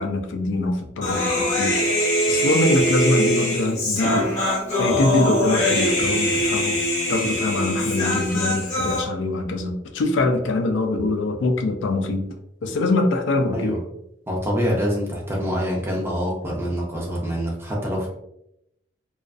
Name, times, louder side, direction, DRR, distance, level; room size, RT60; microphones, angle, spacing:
voice 1, 0.0-6.8 7.1-12.3 12.6-13.8, left 2 dB, 65° left, 5 dB, 0.3 m, -24 dB
Human voice, 1.0-9.0, equal, 35° left, 0.8 m, -22 dB
voice 2, 14.3-18.1, equal, 10° right, -2 dB, 0.5 m, -25 dB
2.4 x 2.3 x 2.3 m, 0.81 s
head